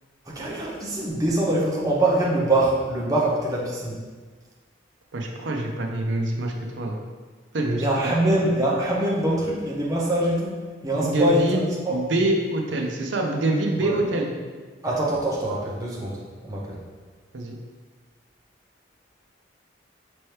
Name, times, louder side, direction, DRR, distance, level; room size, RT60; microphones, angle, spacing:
voice 1, 0.3-4.0 7.8-12.0 13.8-14.0 14.8-16.8, right 1 dB, 20° right, -4 dB, 0.7 m, -24 dB
voice 2, 5.1-7.0 7.5-7.8 10.9-14.3 17.3-17.5, right 2 dB, 80° right, 1 dB, 0.6 m, -25 dB
5.4 x 3.0 x 3.2 m, 1.4 s
head